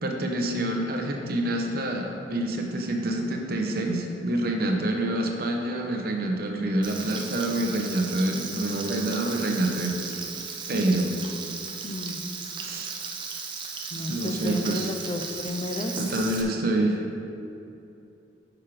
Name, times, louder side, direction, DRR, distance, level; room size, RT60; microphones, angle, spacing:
voice 1, 0.0-9.9 10.7-11.1 12.6-12.9 14.1-14.9 16.0-17.0, right 1 dB, 55° right, 2 dB, 0.8 m, -27 dB
Frying (food), 6.8-16.4, right 5 dB, 25° right, 0.6 m, -36 dB
voice 2, 11.8-12.2 13.9-16.1, left 1 dB, 30° left, 5 dB, 0.5 m, -32 dB
6.4 x 5.9 x 4.9 m, 2.7 s
head